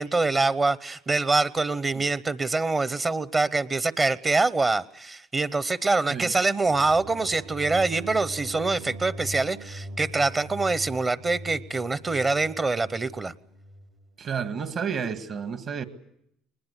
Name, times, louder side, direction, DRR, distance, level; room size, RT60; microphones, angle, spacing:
voice 1, 0.0-13.3, right 3 dB, 30° right, 0.9 m, -25 dB
sound 1, 6.7-13.9, equal, 85° right, 1.9 m, -41 dB
voice 2, 14.2-15.8, right 6 dB, 50° right, 1.8 m, -31 dB
22.5 x 20.5 x 8.2 m
supercardioid pair, 80°, 0 cm